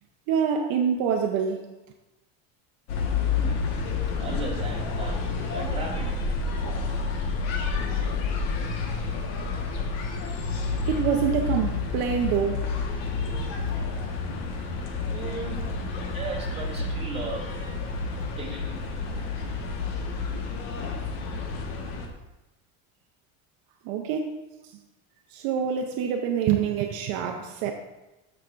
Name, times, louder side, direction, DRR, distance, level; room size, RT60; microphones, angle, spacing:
voice 1, 0.3-1.6 10.9-12.7 23.8-24.4 25.3-27.7, right 7 dB, 70° right, 0.8 m, -26 dB
sound 1, 2.9-22.1, left 4 dB, 75° left, 1.5 m, -29 dB
voice 2, 3.3-3.7 4.2-6.2 15.1-15.7 16.1-17.6 18.4-18.8, right 3 dB, 15° right, 2.4 m, -36 dB
12.5 x 5.9 x 2.5 m
cardioid pair, 130°, 37 cm